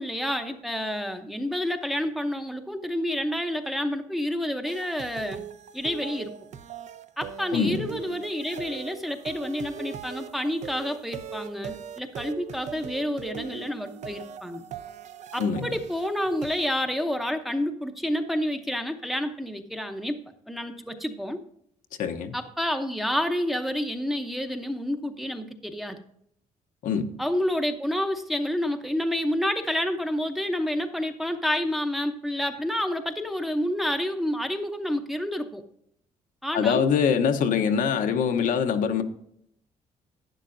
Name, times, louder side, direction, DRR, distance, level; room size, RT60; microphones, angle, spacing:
voice 1, 0.0-5.4 5.7-6.3 7.2-14.6 15.3-20.2 20.5-21.4 22.3-26.0 27.2-35.6 36.4-36.8, left 1 dB, ahead, 5 dB, 0.7 m, -29 dB
sound 1, 4.7-16.7, right 7 dB, 55° right, 0.6 m, -40 dB
voice 2, 7.5-7.9 15.4-15.7 22.0-22.3 26.8-27.1 36.5-39.0, left 7 dB, 70° left, 6 dB, 0.9 m, -24 dB
11.5 x 9.6 x 2.6 m, 0.70 s
cardioid pair, 135°, 14 cm